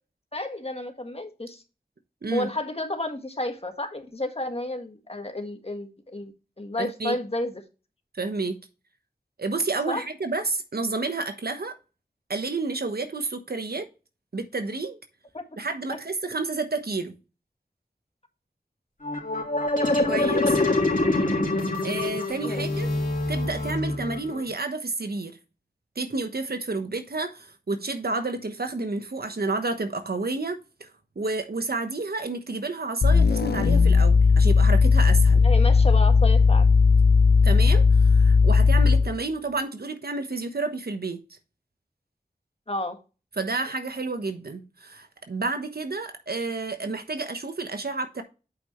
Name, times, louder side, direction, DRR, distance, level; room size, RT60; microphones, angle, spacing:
voice 1, 0.3-1.6 2.3-6.3 6.6-7.5 9.9-10.0 15.3-15.4 22.4-22.6 35.4-36.7 42.7-43.0, left 1 dB, 40° left, 1.6 m, -31 dB
voice 2, 6.8-7.2 8.1-8.6 9.4-11.8 12.3-13.9 14.3-15.0 15.6-17.1 20.1-20.6 21.8-22.9 23.3-25.4 25.9-30.9 31.1-35.4 37.4-41.4 43.4-48.2, right 3 dB, 75° right, 1.1 m, -30 dB
sound 1, 19.0-24.4, left 2 dB, 55° left, 2.9 m, -25 dB
sound 2, 33.0-39.2, left 4 dB, 80° left, 0.6 m, -17 dB
8.4 x 5.7 x 3.1 m
wide cardioid pair, 50°, 16 cm